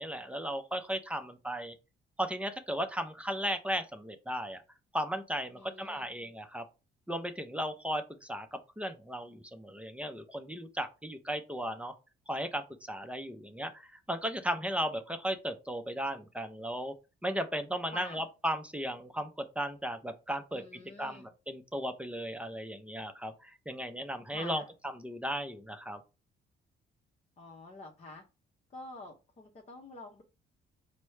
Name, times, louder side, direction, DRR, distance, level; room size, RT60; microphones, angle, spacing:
voice 1, 0.0-1.7 2.2-4.6 4.9-6.6 7.1-11.9 12.3-16.9 17.2-24.6 24.9-26.0, equal, 5° right, 7 dB, 0.5 m, -36 dB
voice 2, 5.6-6.1 17.9-18.2 20.5-21.3 24.3-24.7 27.4-28.2 28.7-30.2, left 2 dB, 35° left, 1 dB, 0.7 m, -48 dB
4.4 x 2.1 x 3.2 m, 0.29 s
cardioid pair, 90°, 20 cm